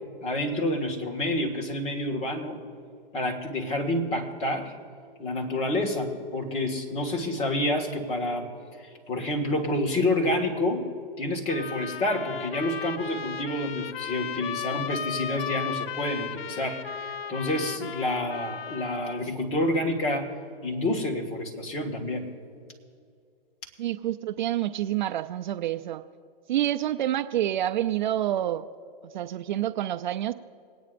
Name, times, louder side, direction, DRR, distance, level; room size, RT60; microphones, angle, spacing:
voice 1, 0.2-2.6 3.1-4.7 5.2-8.5 8.8-10.9 11.2-20.3 20.6-22.3, left 1 dB, 20° left, 0 dB, 1.7 m, -28 dB
sound 1, 11.5-19.3, left 7 dB, 90° left, 0.7 m, -35 dB
voice 2, 23.8-26.0 26.5-28.7 29.0-30.3, right 12 dB, 50° right, 11 dB, 0.5 m, -28 dB
28.0 x 9.4 x 2.6 m, 2.3 s
hypercardioid pair, 140°, 29 cm